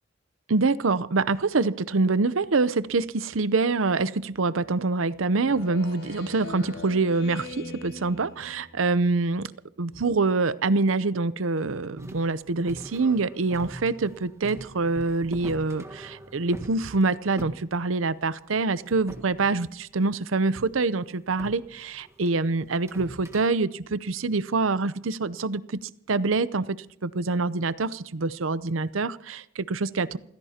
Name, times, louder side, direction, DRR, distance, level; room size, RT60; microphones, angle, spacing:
voice 1, 0.5-9.5 9.8-26.7 27.0-30.2, right 3 dB, 85° right, 16 dB, 0.7 m, -25 dB
Speech synthesizer, 5.4-9.0, left 2 dB, 65° left, 5.4 m, -41 dB
sound 1, 12.0-18.4 18.8-20.1 20.5-20.7 21.3-23.4, right 1 dB, 15° right, 1.5 m, -43 dB
28.5 x 16.0 x 2.9 m, 0.71 s
head